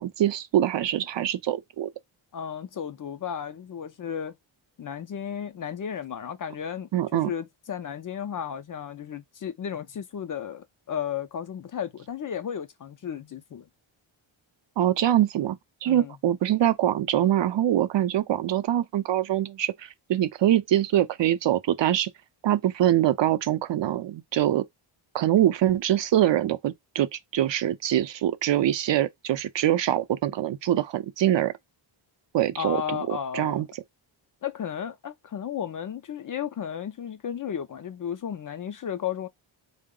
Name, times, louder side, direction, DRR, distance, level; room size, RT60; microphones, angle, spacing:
voice 1, 0.0-1.9 6.9-7.3 14.8-22.1 22.4-24.6 25.1-31.5 32.3-33.7, right 12 dB, 60° right, 0.6 m, -24 dB
voice 2, 2.3-4.4 4.8-13.7 15.9-16.2 32.6-33.6 34.4-39.3, left 8 dB, 45° left, 0.4 m, -34 dB
3.7 x 2.1 x 3.6 m
wide cardioid pair, 145°, 49 cm